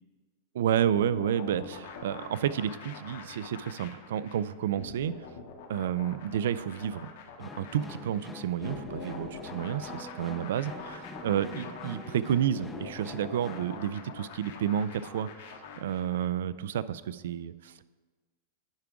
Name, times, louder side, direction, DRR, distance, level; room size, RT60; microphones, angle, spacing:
voice 1, 0.5-5.1 5.7-7.1 7.4-17.8, right 10 dB, 75° right, 16 dB, 0.3 m, -30 dB
sound 1, 0.9-16.3, left 5 dB, 60° left, 1.0 m, -44 dB
sound 2, 7.4-13.8, left 2 dB, 10° left, 0.4 m, -45 dB
10.5 x 4.7 x 3.6 m, 1.3 s
supercardioid pair, 170°, 0 cm